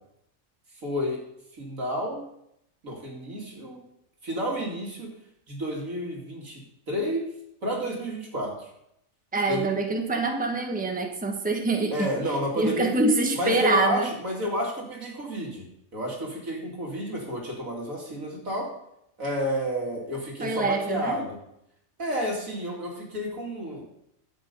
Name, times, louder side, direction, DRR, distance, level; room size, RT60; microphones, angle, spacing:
voice 1, 0.8-1.2 1.6-2.3 2.8-3.8 4.2-5.1 5.5-6.6 6.9-7.3 7.6-8.5 9.5-9.7 11.9-12.9 13.3-18.7 19.2-21.4 22.0-23.8, equal, 85° right, -2 dB, 3.1 m, -30 dB
voice 2, 9.3-12.1 12.6-14.1 20.4-21.2, right 2 dB, 5° right, 3 dB, 1.1 m, -25 dB
11.0 x 8.2 x 5.5 m, 0.77 s
omnidirectional pair, 1.4 m